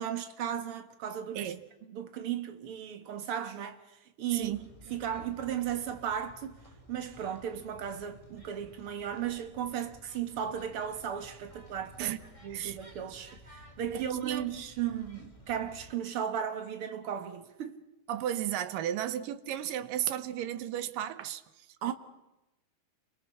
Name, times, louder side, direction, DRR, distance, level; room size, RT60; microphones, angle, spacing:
voice 1, 0.0-1.5 1.9-3.8 4.2-4.5 4.9-6.5 6.9-12.2 12.4-17.8 21.8-21.9, right 9 dB, 50° right, 2.2 m, -35 dB
voice 2, 4.3-4.7 12.0-12.2 12.5-12.8 13.9-14.5 18.1-21.9, right 11 dB, 85° right, 2.8 m, -34 dB
sound 1, 4.4-15.9, equal, 10° left, 2.7 m, -54 dB
29.5 x 24.0 x 5.7 m
omnidirectional pair, 3.8 m